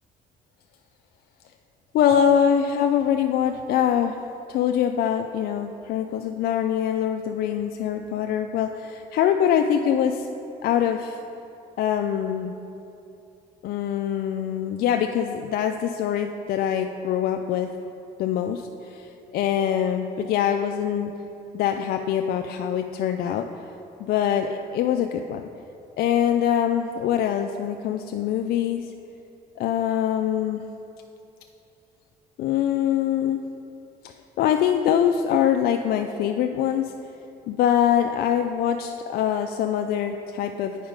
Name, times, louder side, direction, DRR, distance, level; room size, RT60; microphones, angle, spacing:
voice 1, 2.0-4.2 4.5-10.3 10.6-11.2 11.8-12.5 13.6-17.7 18.2-21.1 21.5-23.5 24.0-25.4 26.0-28.9 29.6-30.6 32.4-33.4 34.0-36.9 37.5-40.8, left 9 dB, 65° left, 6 dB, 0.4 m, -24 dB
8.8 x 4.8 x 5.1 m, 2.8 s
cardioid pair, 110°, 17 cm